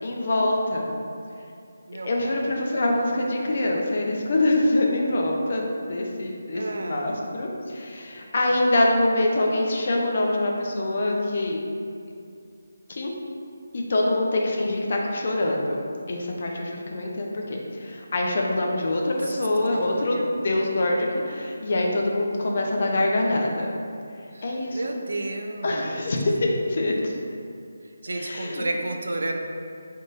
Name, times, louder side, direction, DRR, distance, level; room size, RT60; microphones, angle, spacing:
voice 1, 0.0-0.9 2.0-11.6 12.9-13.1 13.7-15.8 16.1-20.2 20.4-23.7 24.4-25.0 25.6-27.2 28.1-28.6, left 1 dB, 50° left, -1 dB, 0.5 m, -25 dB
voice 2, 1.9-2.4 6.5-7.0 19.7-20.4 24.3-26.1 28.0-29.4, right 2 dB, 70° right, 3 dB, 0.3 m, -32 dB
3.9 x 3.6 x 2.5 m, 2.4 s
figure-of-eight pair, 165°, 0 cm